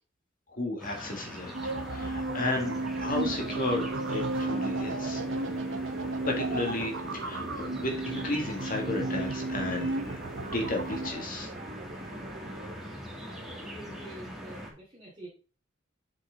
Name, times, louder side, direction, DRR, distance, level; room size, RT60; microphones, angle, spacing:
voice 1, 0.5-1.6 1.9-5.2 6.3-11.5, left 2 dB, 45° left, 1 dB, 1.9 m, -33 dB
sound 1, 0.8-14.7, equal, ahead, 2.5 m, -42 dB
sound 2, 1.5-11.1, right 2 dB, 90° right, 1.0 m, -33 dB
sound 3, 3.0-12.8, right 2 dB, 40° right, 0.9 m, -45 dB
voice 2, 13.2-15.3, right 1 dB, 25° right, -6 dB, 2.4 m, -48 dB
7.9 x 6.1 x 3.9 m, 0.37 s
head